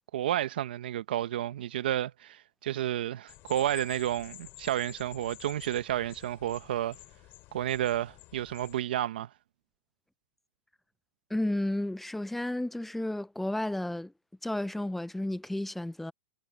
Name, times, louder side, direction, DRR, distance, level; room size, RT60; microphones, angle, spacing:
voice 1, 0.1-7.0 7.5-9.3, right 12 dB, 75° right, 1.0 m, -31 dB
sound 1, 3.3-8.8, left 20 dB, 40° left, 6.2 m, -50 dB
voice 2, 11.3-14.1 14.4-16.1, left 1 dB, 5° left, 0.4 m, -32 dB
hypercardioid pair, 130°, 5 cm